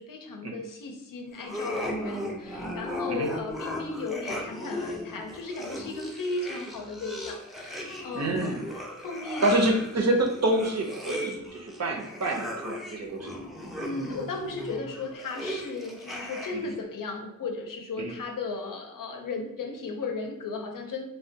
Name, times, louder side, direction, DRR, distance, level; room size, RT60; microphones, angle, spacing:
voice 1, 0.0-9.7 13.7-21.1, left 3 dB, 85° left, 3 dB, 0.6 m, -36 dB
sound 1, 1.4-16.8, left 1 dB, ahead, 0.4 m, -37 dB
voice 2, 8.1-8.7 9.4-13.3 16.5-16.7 18.0-18.1, right 1 dB, 55° right, 1 dB, 0.6 m, -27 dB
3.3 x 2.2 x 2.7 m, 0.82 s
wide cardioid pair, 105°, 32 cm